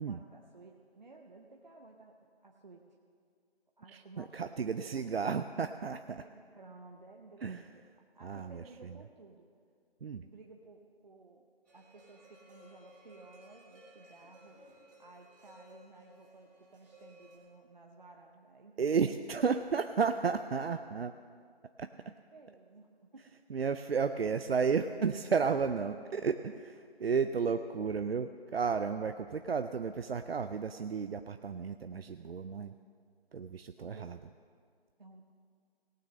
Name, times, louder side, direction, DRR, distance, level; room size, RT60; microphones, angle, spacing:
voice 1, 0.0-3.0 3.8-5.1 6.2-7.8 8.1-9.5 10.2-11.4 11.7-18.8 22.0-23.2 33.8-34.1 35.0-35.2, right 3 dB, 45° right, 1 dB, 0.8 m, -56 dB
voice 2, 3.9-6.2 7.4-7.6 8.2-8.6 10.0-10.2 18.8-21.1 21.8-21.9 23.5-32.7 33.3-34.2, right 5 dB, 70° right, 9 dB, 0.5 m, -33 dB
sound 1, 11.7-17.4, equal, 20° right, 3.9 m, -58 dB
18.0 x 6.3 x 6.4 m, 2.2 s
figure-of-eight pair, 165°, 31 cm